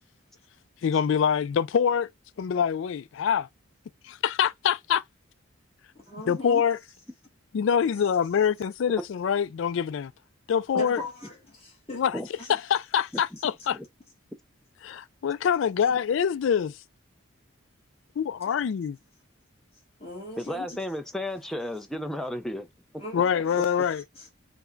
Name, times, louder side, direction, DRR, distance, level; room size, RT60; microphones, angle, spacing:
voice 1, 0.8-2.1 2.4-3.5 4.0-5.0 6.3-6.8 7.5-10.1 10.5-11.0 11.9-12.2 12.5-13.8 14.8-16.8 18.2-19.0 23.1-24.0, left 7 dB, 65° left, 0.3 m, -25 dB
voice 2, 6.1-6.6 10.8-12.0 12.4-12.6 18.5-18.6 20.0-20.8 23.0-24.3, left 2 dB, 30° left, 1.2 m, -40 dB
voice 3, 20.4-22.7, left 1 dB, ahead, 0.4 m, -33 dB
4.7 x 2.1 x 3.8 m
head